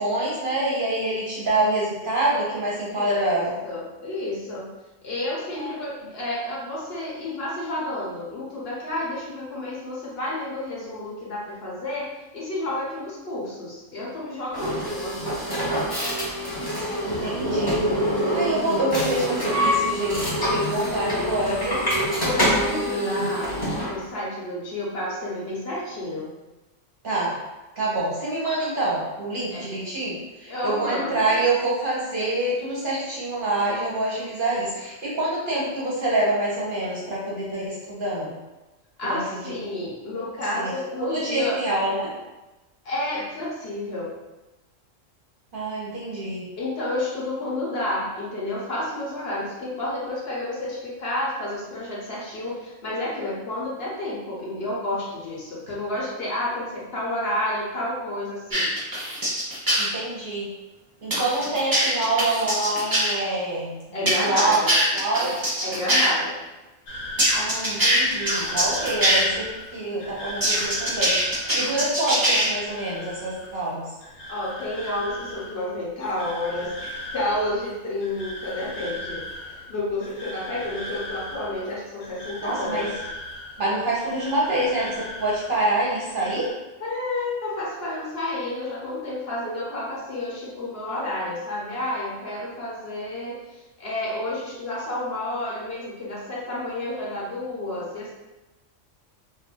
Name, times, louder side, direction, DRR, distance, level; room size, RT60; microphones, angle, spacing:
voice 1, 0.0-3.6 5.5-5.8 17.0-21.8 22.7-23.4 27.0-27.4 27.8-38.3 39.1-39.6 40.5-40.7 41.1-42.1 45.5-46.5 59.8-60.5 61.0-63.8 64.0-64.6 64.9-65.3 67.3-71.2 71.5-73.8 82.4-82.9 83.6-86.5, right 2 dB, 50° right, -6 dB, 0.8 m, -26 dB
voice 2, 2.9-4.7 5.0-15.9 22.2-23.5 23.8-26.3 29.5-29.6 30.5-31.4 39.0-41.6 42.8-44.1 46.6-58.7 63.9-64.8 65.2-65.3 65.6-66.4 74.3-83.0 86.8-98.1, left 1 dB, 55° left, -5 dB, 0.9 m, -30 dB
sound 1, 14.5-23.9, equal, 20° left, 0.9 m, -25 dB
sound 2, 58.5-59.9 61.1-63.1 64.1-66.1 67.2-69.2 70.4-72.4, right 1 dB, 25° right, 0.5 m, -22 dB
sound 3, 66.9-85.7 86.0-86.5, left 1 dB, 85° left, 1.2 m, -38 dB
2.5 x 2.5 x 3.6 m, 1.1 s
omnidirectional pair, 1.3 m